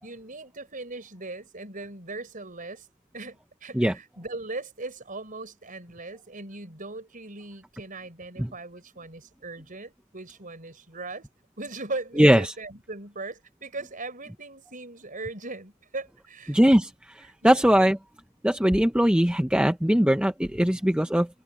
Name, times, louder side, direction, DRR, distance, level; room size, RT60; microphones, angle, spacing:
voice 1, 0.0-2.9 3.1-11.3 11.6-16.6 17.4-17.6, right 2 dB, 35° right, 4.9 m, -39 dB
voice 2, 12.2-12.5 16.5-16.9 17.2-18.0 18.4-21.3, equal, 5° right, 0.7 m, -20 dB
head